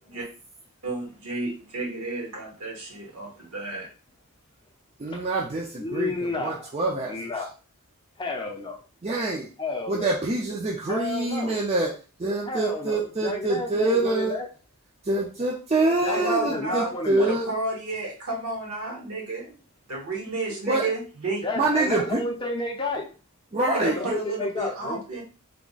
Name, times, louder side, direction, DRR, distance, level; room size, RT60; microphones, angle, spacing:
voice 1, 0.8-3.9 15.8-16.9 17.2-19.5 19.9-21.4 23.7-25.2, right 2 dB, 70° right, 1.5 m, -32 dB
voice 2, 5.0-7.2 9.0-9.5 9.9-11.9 12.2-14.4 15.1-17.5 20.5-20.9 21.6-22.2 23.5-24.1, right 2 dB, 30° right, 0.5 m, -25 dB
voice 3, 5.8-6.7 7.1-7.5 8.2-8.8 9.6-10.1 10.9-11.6 12.4-14.5 16.0-17.3 21.4-23.1 23.8-25.0, left 2 dB, 20° left, 0.5 m, -31 dB
3.4 x 2.1 x 3.9 m
head